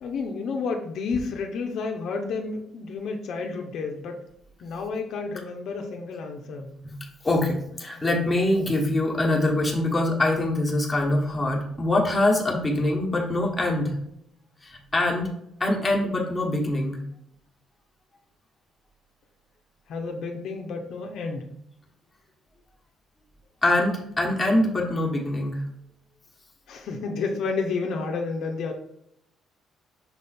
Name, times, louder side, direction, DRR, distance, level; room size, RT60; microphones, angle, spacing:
voice 1, 0.0-4.2 4.6-6.7 7.9-8.0 8.5-8.7 19.9-21.5 26.7-28.7, left 4 dB, 60° left, 3 dB, 0.7 m, -31 dB
voice 2, 7.2-13.9 14.6-15.3 15.6-17.0 23.6-25.6, left 1 dB, 10° left, -2 dB, 1.3 m, -24 dB
6.1 x 3.6 x 4.2 m, 0.74 s
cardioid pair, 155°, 0 cm